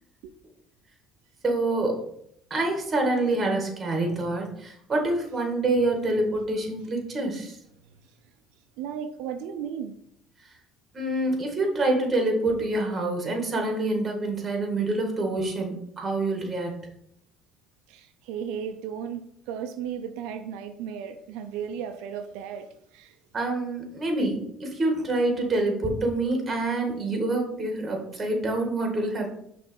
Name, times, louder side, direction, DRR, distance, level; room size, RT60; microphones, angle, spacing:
voice 1, 1.4-2.0 2.5-7.6 10.9-16.8 23.3-29.3, right 2 dB, 25° right, 2 dB, 2.0 m, -26 dB
voice 2, 8.8-9.9 17.9-23.2, right 8 dB, 90° right, 6 dB, 0.5 m, -35 dB
6.0 x 3.3 x 5.5 m, 0.71 s
cardioid pair, 110°, 0 cm